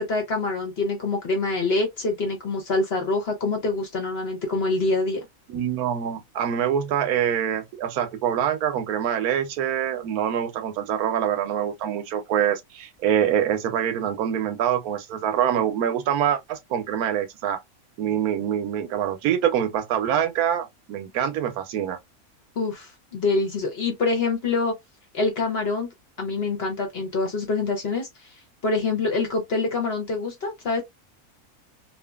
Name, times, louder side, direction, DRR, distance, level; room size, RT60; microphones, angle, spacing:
voice 1, 0.0-5.2 22.6-24.7 25.1-25.9 26.2-28.1 28.6-30.8, left 3 dB, 50° left, 1.0 m, -25 dB
voice 2, 5.5-17.6 18.0-22.0, right 9 dB, 80° right, 1.1 m, -25 dB
2.8 x 2.4 x 2.2 m
omnidirectional pair, 1.6 m